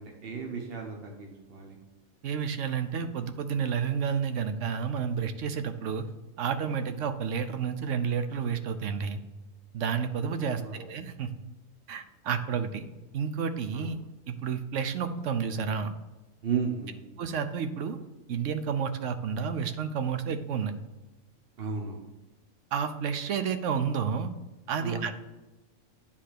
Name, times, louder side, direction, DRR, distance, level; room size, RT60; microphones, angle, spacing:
voice 1, 0.0-1.8 10.4-10.8 13.7-13.9 16.4-17.0 21.6-22.1 24.8-25.1, right 6 dB, 50° right, 1 dB, 1.2 m, -34 dB
voice 2, 2.2-6.1 6.4-9.2 9.7-11.3 11.9-12.9 13.1-14.0 14.3-15.9 17.2-18.0 18.3-20.7 22.7-24.3 24.7-25.1, right 6 dB, 70° right, 10 dB, 1.0 m, -30 dB
9.7 x 3.7 x 6.6 m, 1.1 s
omnidirectional pair, 1.3 m